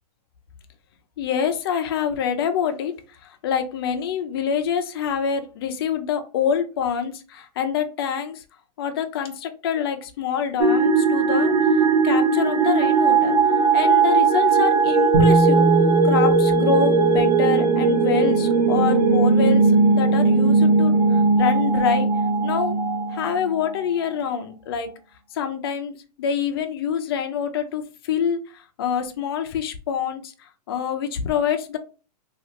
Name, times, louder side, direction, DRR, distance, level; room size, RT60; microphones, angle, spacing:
voice 1, 1.2-8.4 8.8-13.4 13.7-15.7 16.0-22.1 22.4-22.8 23.1-24.9 25.3-31.8, left 7 dB, 35° left, 7 dB, 0.4 m, -26 dB
sound 1, 10.6-23.7, right 4 dB, 75° right, 0.6 m, -19 dB
Bass guitar, 15.1-19.1 20.2-20.3, right 2 dB, 35° right, 0.9 m, -23 dB
3.1 x 2.4 x 2.7 m, 0.34 s
hypercardioid pair, 170°, 21 cm